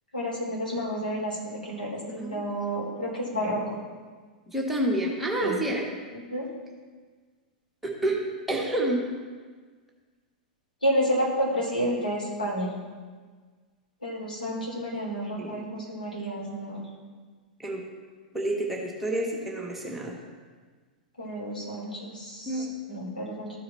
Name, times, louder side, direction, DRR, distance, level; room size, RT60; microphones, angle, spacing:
voice 1, 0.1-3.8 5.4-5.6 6.1-6.5 10.8-12.7 14.0-16.8 21.2-23.6, equal, 85° left, -5 dB, 3.0 m, -30 dB
voice 2, 4.5-5.8 7.8-8.2 8.5-9.0 15.4-15.6 17.6-17.8 18.3-20.2 22.5-22.7, right 1 dB, 5° right, -4 dB, 1.6 m, -28 dB
14.0 x 4.8 x 4.2 m, 1.5 s
figure-of-eight pair, 100°, 5 cm